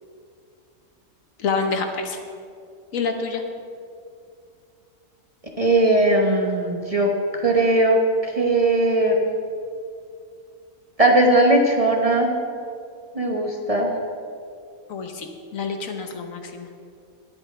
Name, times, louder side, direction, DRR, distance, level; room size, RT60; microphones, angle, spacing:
voice 1, 1.4-2.2 2.9-3.4 14.9-16.7, left 4 dB, 70° left, 5 dB, 1.4 m, -27 dB
voice 2, 5.6-7.1 7.4-9.2 11.0-12.3 13.1-13.9, right 1 dB, 30° right, 1 dB, 0.9 m, -19 dB
20.0 x 8.7 x 3.3 m, 2.4 s
omnidirectional pair, 1.5 m